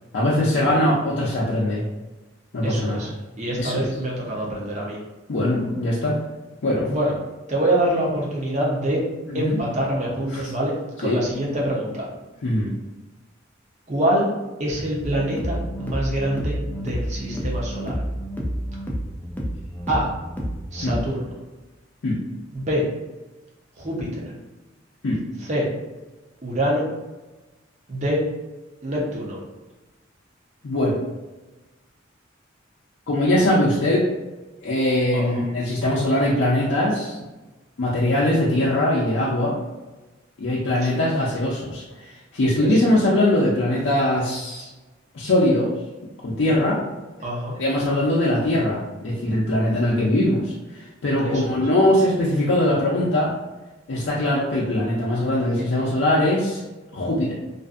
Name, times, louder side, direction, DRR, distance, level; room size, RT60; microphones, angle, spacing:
voice 1, 0.1-1.8 2.5-3.1 3.6-3.9 5.3-6.2 6.6-6.9 9.3-9.6 10.3-10.4 11.0-11.2 12.4-12.7 20.8-21.1 22.0-22.2 25.0-25.2 30.6-31.0 33.1-34.1 34.6-37.2 37.8-39.6 40.4-44.7 45.1-45.7 46.2-46.8 47.6-53.3 53.9-56.6 56.9-57.3, left 1 dB, 70° left, -6 dB, 0.5 m, -21 dB
voice 2, 2.6-3.1 3.4-5.0 6.9-7.1 7.5-9.0 9.3-10.7 11.0-12.1 13.9-14.3 14.6-18.0 19.9-20.1 20.7-21.3 22.5-22.8 23.8-24.3 25.4-25.7 26.4-26.9 27.9-28.2 28.8-29.4 35.1-35.5 40.9-41.0 42.6-43.0 47.2-47.6 51.2-51.6, right 1 dB, 35° right, -3 dB, 0.7 m, -25 dB
sound 1, 15.0-21.1, equal, 10° left, 0.3 m, -29 dB
2.6 x 2.4 x 2.4 m, 1.1 s
head